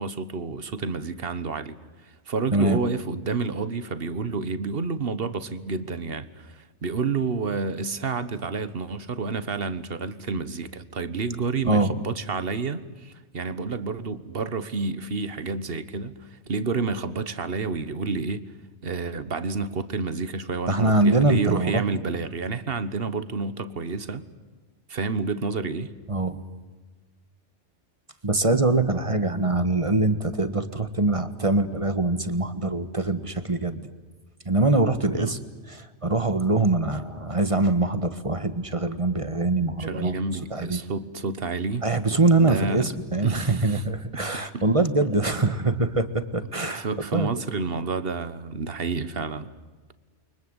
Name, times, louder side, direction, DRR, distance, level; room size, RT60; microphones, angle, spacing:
voice 1, 0.0-1.8 2.0-18.4 18.8-24.2 24.9-25.9 35.1-35.3 39.6-41.9 42.4-42.9 43.2-43.8 44.1-44.7 46.7-49.5, right 4 dB, 50° right, 1.5 m, -29 dB
voice 2, 20.7-21.8 26.1-26.4 28.2-33.9 34.4-35.4 35.7-40.2 40.5-40.8 41.8-46.9 47.1-47.3, right 2 dB, 25° right, 1.6 m, -23 dB
29.5 x 24.0 x 8.1 m
omnidirectional pair, 1.2 m